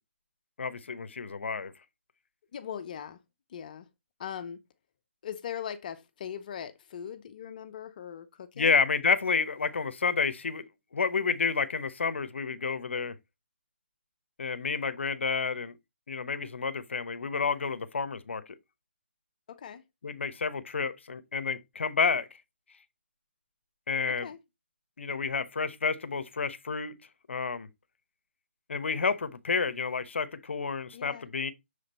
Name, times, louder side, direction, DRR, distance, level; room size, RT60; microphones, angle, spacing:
voice 1, 0.6-1.7 8.6-10.6 10.9-13.1 14.4-15.7 16.1-18.5 20.0-22.4 23.9-24.3 25.0-26.9 27.3-27.7 28.7-31.5, left 5 dB, 70° left, 0.9 m, -30 dB
voice 2, 2.5-3.2 3.5-3.9 4.2-4.6 5.2-8.7 19.5-19.8 24.2-24.4 30.9-31.2, left 8 dB, 40° left, 0.7 m, -40 dB
6.8 x 5.0 x 4.1 m
hypercardioid pair, 155°, 7 cm